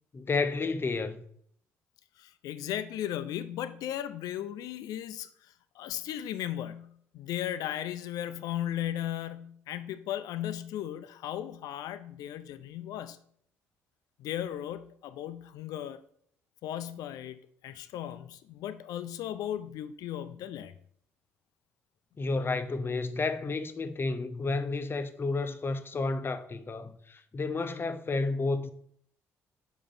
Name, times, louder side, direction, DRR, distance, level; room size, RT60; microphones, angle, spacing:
voice 1, 0.1-1.2 22.2-28.7, left 3 dB, 35° left, 0.7 m, -31 dB
voice 2, 2.2-5.3 5.8-13.2 14.2-16.0 16.6-20.7, left 11 dB, 70° left, 0.4 m, -36 dB
5.1 x 4.4 x 5.4 m
hypercardioid pair, 55°, 7 cm